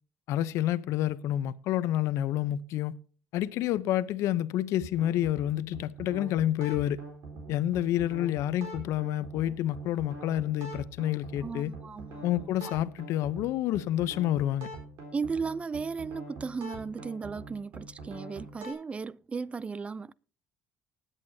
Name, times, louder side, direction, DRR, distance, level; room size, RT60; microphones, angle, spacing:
voice 1, 0.3-2.9 3.3-7.0 7.5-11.7 12.2-14.7, left 12 dB, 75° left, 0.7 m, -29 dB
electro bass loop, 4.8-18.7, right 2 dB, 70° right, 4.1 m, -44 dB
voice 2, 11.4-12.7 15.1-20.1, right 5 dB, 25° right, 0.4 m, -36 dB
19.5 x 8.2 x 2.7 m
cardioid pair, 100°, 5 cm